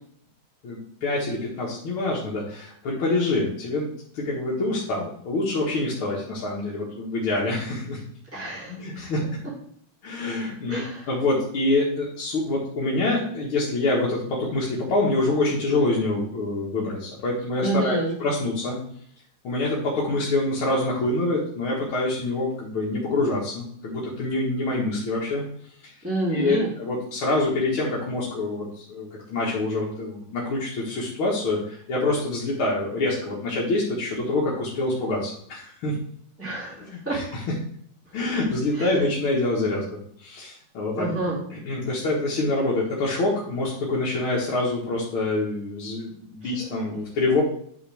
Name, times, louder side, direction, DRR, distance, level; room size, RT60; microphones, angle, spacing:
voice 1, 0.6-3.9 4.1-8.0 8.7-9.2 10.0-18.8 19.4-25.4 26.3-36.0 36.7-37.4 38.1-39.9 40.2-41.1 41.5-47.4, left 2 dB, 90° left, -4 dB, 2.3 m, -26 dB
voice 2, 8.3-8.8 10.7-11.0 17.6-18.1 26.0-26.7 36.4-37.2 38.8-38.9 41.0-41.4, right 2 dB, 5° right, -6 dB, 2.7 m, -28 dB
8.8 x 6.3 x 3.4 m, 0.64 s
omnidirectional pair, 2.2 m